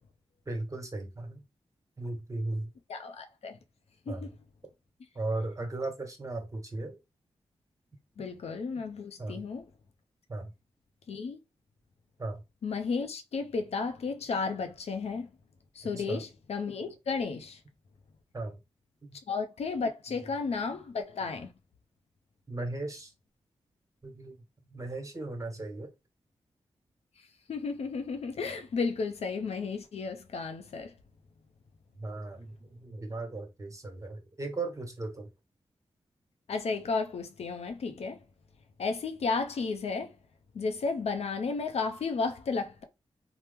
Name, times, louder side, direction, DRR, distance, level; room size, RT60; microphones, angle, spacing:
voice 1, 0.5-1.4 2.0-2.7 4.1-4.3 5.1-7.0 9.2-9.4 10.3-10.5 12.2-12.4 15.8-16.2 18.3-18.6 20.1-20.2 22.5-23.1 24.0-24.4 24.7-25.9 32.0-35.3, right 2 dB, 30° right, 1.1 m, -36 dB
voice 2, 2.9-3.6 4.1-4.3 8.2-9.6 11.1-11.4 12.6-15.3 15.7-17.6 19.3-21.5 27.5-30.9 36.5-38.2 38.8-40.1 40.5-42.8, left 4 dB, 70° left, 0.6 m, -33 dB
3.0 x 2.0 x 3.4 m
cardioid pair, 45°, 11 cm